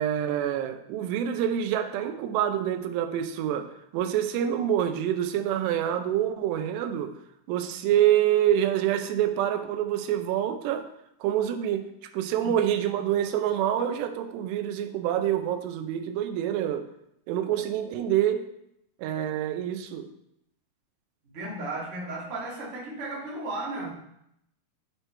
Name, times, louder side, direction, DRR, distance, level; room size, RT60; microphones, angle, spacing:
voice 1, 0.0-7.1 7.5-10.9 11.2-11.8 12.1-16.9 17.3-18.5 19.0-20.1, right 10 dB, 90° right, 7 dB, 2.8 m, -26 dB
voice 2, 21.2-23.9, right 2 dB, 75° right, -5 dB, 0.6 m, -35 dB
11.5 x 4.4 x 3.3 m, 0.78 s
omnidirectional pair, 4.8 m